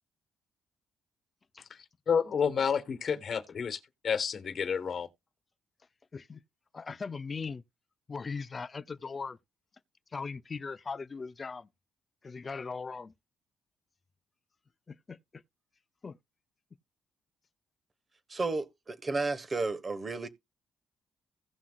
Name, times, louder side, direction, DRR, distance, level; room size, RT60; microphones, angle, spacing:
voice 1, 2.1-3.8 4.0-5.1, left 6 dB, 50° left, 1.3 m, -29 dB
voice 2, 6.7-7.6 8.1-9.4 10.1-11.7 12.2-13.1 14.9-15.4 16.0-16.2, left 4 dB, 30° left, 0.5 m, -39 dB
voice 3, 18.3-20.3, right 3 dB, 30° right, 1.2 m, -32 dB
16.5 x 5.8 x 2.4 m
cardioid pair, 100°, 0 cm